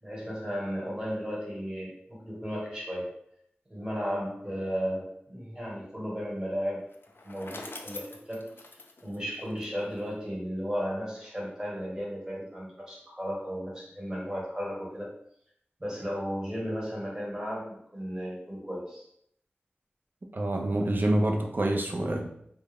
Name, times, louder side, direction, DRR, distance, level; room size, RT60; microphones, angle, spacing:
voice 1, 0.0-3.1 3.7-6.8 7.2-8.5 9.0-15.1 15.8-19.0, equal, 15° right, -5 dB, 1.2 m, -34 dB
Bicycle, 6.9-10.1, left 2 dB, 65° left, 0.3 m, -45 dB
voice 2, 20.3-22.3, right 1 dB, 55° right, 2 dB, 0.4 m, -27 dB
2.3 x 2.1 x 3.4 m, 0.70 s
wide cardioid pair, 55°, 4 cm